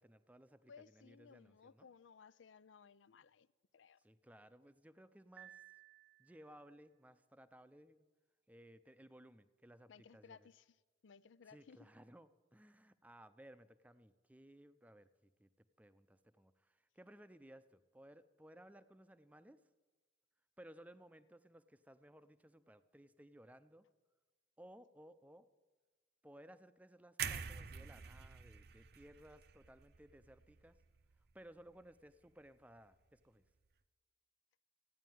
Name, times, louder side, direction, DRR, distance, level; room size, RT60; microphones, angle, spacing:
voice 1, 0.0-1.9 4.0-5.6 6.2-8.0 8.5-10.5 11.5-19.6 20.6-23.9 24.6-25.5 26.2-30.8 31.3-33.4, right 1 dB, 10° right, 0.5 m, -60 dB
voice 2, 0.7-3.5 3.7-4.0 9.9-10.8 11.0-11.9, left 6 dB, 85° left, 0.5 m, -60 dB
Piano, 5.4-6.7, right 12 dB, 80° right, 1.1 m, -59 dB
sound 1, 27.2-31.2 31.6-31.8, right 7 dB, 55° right, 0.6 m, -47 dB
14.5 x 9.5 x 9.2 m
head